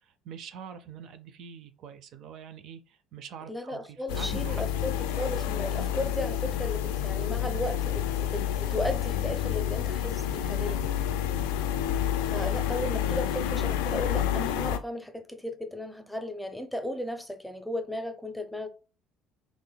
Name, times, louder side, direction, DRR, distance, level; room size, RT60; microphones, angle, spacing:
voice 1, 0.0-4.6 10.7-11.2 12.5-12.7 13.1-13.2, right 7 dB, 65° right, 0.4 m, -44 dB
voice 2, 3.5-10.8 12.2-18.7, left 1 dB, 5° left, 0.6 m, -35 dB
sound 1, 4.1-14.8, left 10 dB, 85° left, 0.3 m, -29 dB
3.8 x 3.0 x 2.2 m
supercardioid pair, 80°, 0 cm